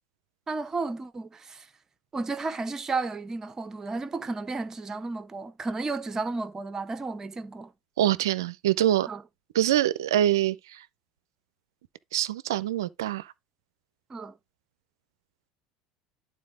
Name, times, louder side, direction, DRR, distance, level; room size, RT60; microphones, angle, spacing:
voice 1, 0.5-1.7 2.1-7.7 9.0-9.2 14.1-14.3, right 3 dB, 25° right, 1.1 m, -33 dB
voice 2, 8.0-9.1 9.5-10.6 12.1-13.2, right 12 dB, 80° right, 0.5 m, -24 dB
11.0 x 3.9 x 3.7 m
hypercardioid pair, 75°, 2 cm